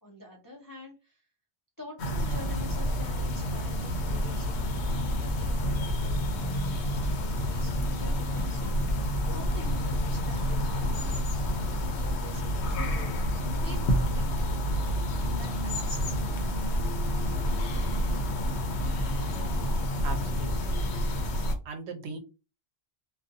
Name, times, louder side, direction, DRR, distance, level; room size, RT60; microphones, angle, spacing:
voice 1, 0.0-1.3 1.8-6.6 7.1-14.4 15.3-16.3, left 2 dB, 30° left, 0 dB, 0.4 m, -47 dB
sound 1, 2.0-21.6, equal, 75° left, 0.9 m, -29 dB
voice 2, 20.0-20.8 21.6-22.2, right 3 dB, 80° right, 6 dB, 0.9 m, -38 dB
2.5 x 2.3 x 2.5 m, 0.31 s
omnidirectional pair, 1.1 m